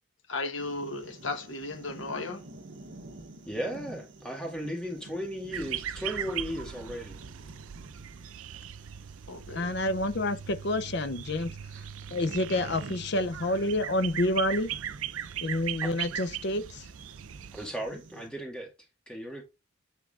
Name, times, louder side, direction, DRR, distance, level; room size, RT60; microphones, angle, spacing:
voice 1, 0.3-2.4 9.3-9.7, left 3 dB, 70° left, 1.2 m, -35 dB
sound 1, 0.6-18.3, right 2 dB, 65° right, 1.1 m, -50 dB
voice 2, 3.5-7.2 17.5-18.7 19.1-19.4, equal, 5° left, 2.0 m, -36 dB
sound 2, 5.5-17.7, right 10 dB, 80° right, 0.5 m, -39 dB
voice 3, 9.6-11.6 12.1-14.7 15.4-16.8, left 1 dB, 55° left, 0.6 m, -28 dB
8.2 x 3.7 x 3.6 m
head